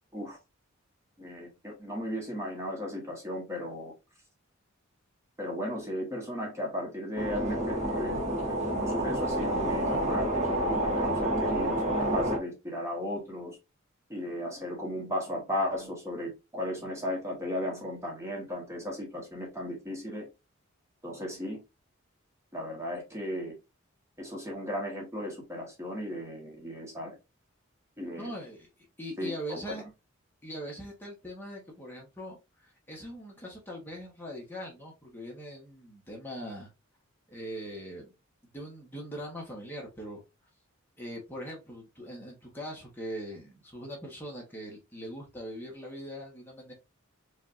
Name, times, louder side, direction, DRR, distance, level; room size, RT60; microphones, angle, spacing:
voice 1, 1.2-3.9 5.4-8.2 8.5-13.6 14.1-20.3 21.0-21.6 22.5-23.5 24.2-27.1 28.0-28.3 29.2-29.6, left 1 dB, 15° right, 1.2 m, -36 dB
sound 1, 7.2-12.4, right 1 dB, 35° right, 1.2 m, -29 dB
voice 2, 28.2-28.7 29.0-29.8 30.4-36.7 37.3-38.1 38.5-40.2 41.0-46.7, equal, 10° left, 1.1 m, -41 dB
5.2 x 2.5 x 2.6 m
head